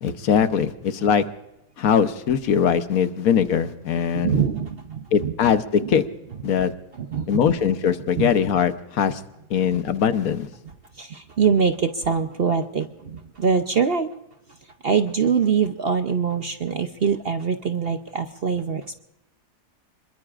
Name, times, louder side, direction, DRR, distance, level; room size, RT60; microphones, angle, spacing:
voice 1, 0.0-1.2 1.8-4.4 5.1-6.0 6.4-6.7 7.3-9.2 9.5-10.5, left 7 dB, 65° left, 10 dB, 1.3 m, -21 dB
voice 2, 3.9-5.3 5.8-5.9 6.9-7.4 8.2-8.3 11.0-14.1 14.8-19.0, right 6 dB, 50° right, 8 dB, 0.8 m, -23 dB
26.5 x 22.0 x 2.4 m, 0.91 s
omnidirectional pair, 1.7 m